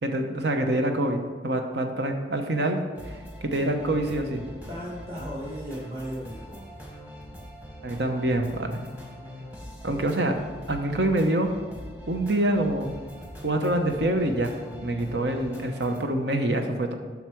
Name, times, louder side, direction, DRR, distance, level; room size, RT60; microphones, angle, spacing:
voice 1, 0.0-2.8 3.1-3.2 3.4-4.5 7.8-8.8 9.8-10.4 10.7-11.5 12.1-12.9 13.4-14.5 14.8-16.9, right 1 dB, 70° right, 5 dB, 0.9 m, -26 dB
sound 1, 2.9-16.0, equal, 10° right, 1.1 m, -43 dB
voice 2, 4.7-6.7 9.2-9.3, equal, 30° right, -6 dB, 1.5 m, -36 dB
8.0 x 5.8 x 4.6 m, 1.5 s
head